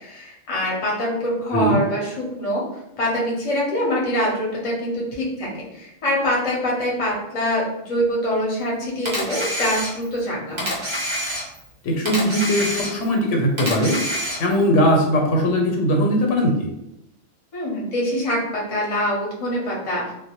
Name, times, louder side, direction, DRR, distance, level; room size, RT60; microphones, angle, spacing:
voice 1, 0.0-2.6 3.0-10.8 17.5-20.0, equal, 40° left, -4 dB, 0.6 m, -24 dB
Camera, 9.0-10.2 10.6-11.7 12.0-13.2 13.6-14.6, equal, 35° right, 0.4 m, -27 dB
voice 2, 11.8-14.0 14.4-16.7, equal, 85° left, 0 dB, 1.0 m, -20 dB
2.1 x 2.1 x 2.8 m, 0.83 s
omnidirectional pair, 1.3 m